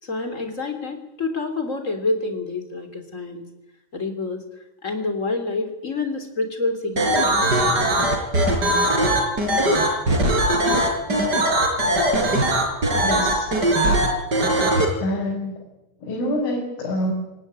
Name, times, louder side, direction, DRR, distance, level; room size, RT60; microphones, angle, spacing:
voice 1, 0.0-3.5 3.9-4.4 4.8-7.8, left 3 dB, 20° left, 6 dB, 2.6 m, -28 dB
sound 1, 7.0-14.8, right 1 dB, 20° right, 5.3 m, -19 dB
voice 2, 13.0-13.5 15.0-15.6 16.0-17.1, left 1 dB, 80° left, -3 dB, 7.5 m, -26 dB
26.5 x 18.5 x 9.6 m, 0.99 s
omnidirectional pair, 5.6 m